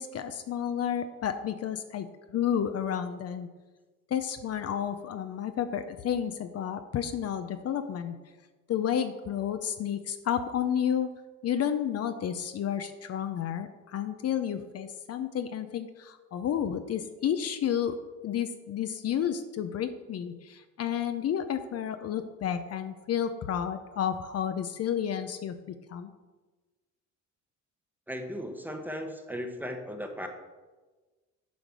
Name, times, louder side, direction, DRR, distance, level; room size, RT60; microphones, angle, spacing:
voice 1, 0.0-3.5 4.1-8.2 8.7-11.2 11.4-18.0 18.2-26.1, left 9 dB, 50° left, 9 dB, 0.7 m, -31 dB
voice 2, 28.1-30.3, equal, 5° right, 5 dB, 1.1 m, -36 dB
9.3 x 5.0 x 6.2 m, 1.3 s
cardioid pair, 105°, 31 cm